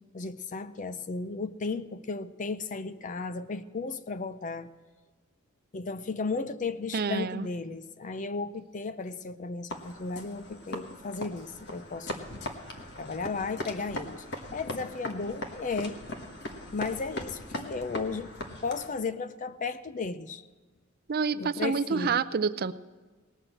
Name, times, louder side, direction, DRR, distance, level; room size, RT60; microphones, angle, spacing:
voice 1, 0.1-4.7 5.7-12.1 13.0-14.2 14.5-16.0 16.7-18.3 18.6-20.4 21.3-22.2, left 4 dB, 40° left, 12 dB, 0.5 m, -34 dB
voice 2, 6.9-7.5 21.1-22.7, right 5 dB, 45° right, 14 dB, 0.4 m, -28 dB
sound 1, 9.7-19.0, left 1 dB, 55° left, 1.4 m, -39 dB
18.5 x 6.4 x 7.7 m, 1.3 s
head